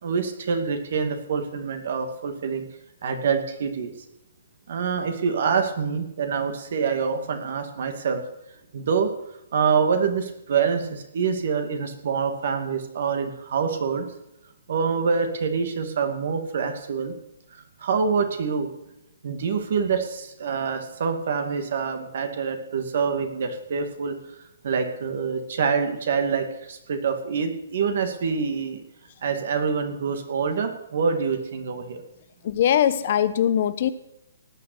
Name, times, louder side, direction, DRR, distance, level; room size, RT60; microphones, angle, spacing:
voice 1, 0.0-2.7 3.0-3.9 4.7-8.2 8.7-9.1 9.5-14.1 14.7-17.1 17.8-18.7 19.2-24.1 24.6-28.8 29.2-32.0, right 6 dB, 50° right, 7 dB, 2.4 m, -26 dB
voice 2, 32.4-33.9, left 10 dB, 40° left, 14 dB, 0.9 m, -21 dB
18.5 x 6.8 x 8.0 m, 0.83 s
hypercardioid pair, 170°, 0 cm